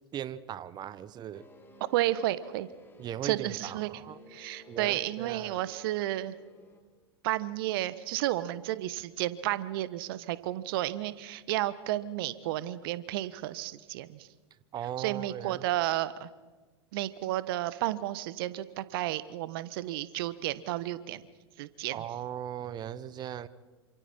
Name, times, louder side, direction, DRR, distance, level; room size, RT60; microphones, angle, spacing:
voice 1, 0.1-1.5 3.0-4.2 4.7-5.6 14.7-15.6 21.9-23.5, right 10 dB, 30° right, 17 dB, 1.0 m, -38 dB
sound 1, 1.3-6.8, left 2 dB, 15° left, 3.7 m, -55 dB
voice 2, 1.9-2.7 3.2-3.9 4.3-6.3 7.2-14.3 15.0-16.3 16.9-21.2 21.6-22.0, right 15 dB, 55° right, 16 dB, 1.2 m, -32 dB
28.0 x 27.0 x 4.4 m, 1.3 s
figure-of-eight pair, 90°, 14 cm